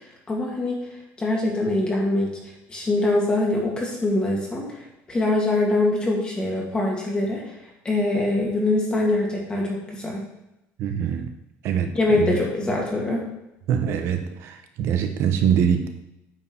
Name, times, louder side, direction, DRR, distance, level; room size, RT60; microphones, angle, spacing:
voice 1, 0.3-0.9 1.2-2.3 2.7-4.7 5.1-7.4 7.8-10.2 11.9-13.2, left 2 dB, 15° left, -2 dB, 2.0 m, -23 dB
voice 2, 10.8-11.3 11.6-12.4 13.7-15.9, right 8 dB, 50° right, 6 dB, 1.0 m, -24 dB
9.2 x 4.7 x 6.2 m, 0.89 s
cardioid pair, 175°, 6 cm